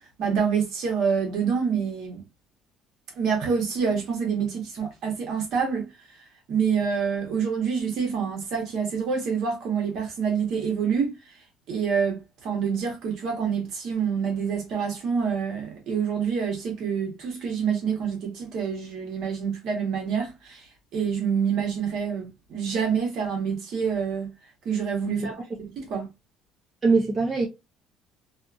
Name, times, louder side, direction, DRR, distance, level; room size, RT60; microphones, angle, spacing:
voice 1, 0.2-2.2 3.1-6.2 6.5-11.2 11.7-24.3 24.6-26.1, right 6 dB, 55° right, 1.2 m, -27 dB
voice 2, 26.8-27.5, right 4 dB, 20° right, 0.7 m, -22 dB
2.7 x 2.5 x 2.4 m
cardioid pair, 155°, 0 cm